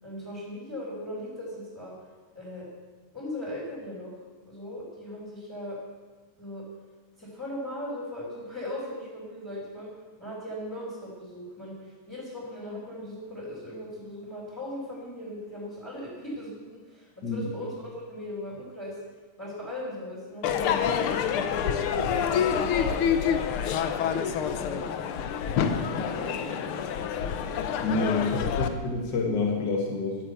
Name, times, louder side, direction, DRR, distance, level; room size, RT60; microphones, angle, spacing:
voice 1, 0.0-2.0 2.3-2.7 3.1-4.1 4.5-5.8 6.4-6.7 7.2-9.9 10.2-19.0 19.4-23.4 24.0-24.9 25.6-27.3, left 1 dB, 5° left, -7 dB, 4.3 m, -39 dB
Crowd / Fireworks, 20.4-28.7, left 8 dB, 80° left, 1.8 m, -27 dB
voice 2, 27.8-30.2, left 3 dB, 55° left, 1 dB, 2.1 m, -28 dB
12.5 x 9.9 x 8.0 m, 1.3 s
omnidirectional pair, 2.4 m